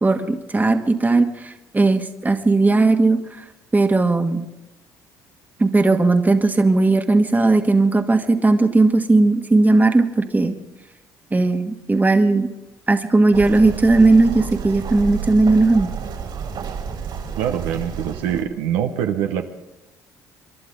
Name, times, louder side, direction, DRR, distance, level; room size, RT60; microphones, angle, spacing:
voice 1, 0.0-3.4 3.7-4.5 5.6-10.5 11.3-12.5 12.9-15.9, right 3 dB, 20° right, 6 dB, 1.5 m, -17 dB
sound 1, 13.3-18.4, right 6 dB, 60° right, 3.3 m, -30 dB
voice 2, 17.4-19.5, right 9 dB, 85° right, 5 dB, 1.0 m, -24 dB
27.5 x 11.5 x 3.8 m, 0.97 s
supercardioid pair, 70°, 9 cm